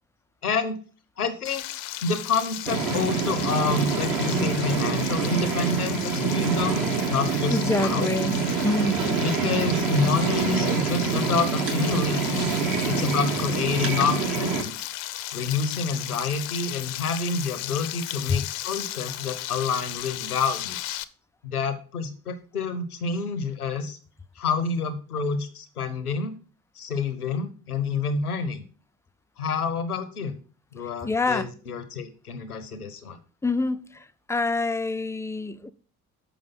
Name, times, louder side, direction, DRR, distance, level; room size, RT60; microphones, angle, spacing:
voice 1, 0.4-0.8 1.2-1.6 2.0-8.1 9.2-12.5 12.8-14.8 15.3-21.0 21.4-24.0 24.4-26.4 26.8-28.6 29.4-30.3 30.7-33.2, left 4 dB, 85° left, 0.8 m, -28 dB
Frying (food), 1.4-21.0, left 15 dB, 55° left, 0.6 m, -35 dB
sound 1, 2.7-14.6, right 5 dB, 50° right, 1.7 m, -26 dB
voice 2, 7.5-8.4 8.6-9.0 18.3-18.4 31.0-31.5 33.4-35.7, left 3 dB, 5° left, 0.4 m, -26 dB
6.9 x 5.0 x 5.6 m
figure-of-eight pair, 50°, 43 cm